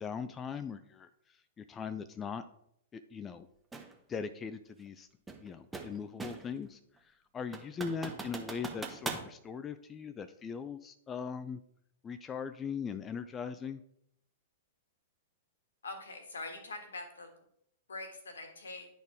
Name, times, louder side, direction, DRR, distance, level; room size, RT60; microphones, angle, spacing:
voice 1, 0.0-2.4 2.9-3.5 4.1-5.1 5.4-11.6 12.0-13.8, left 6 dB, 20° left, 11 dB, 0.4 m, -40 dB
sound 1, 3.7-3.9 5.3-6.6 7.0-7.1 7.5-9.3, right 3 dB, 10° right, 1.0 m, -41 dB
voice 2, 15.8-17.3 17.9-18.9, left 2 dB, 75° left, 6 dB, 1.5 m, -43 dB
10.5 x 4.3 x 3.5 m, 0.72 s
figure-of-eight pair, 105°, 0 cm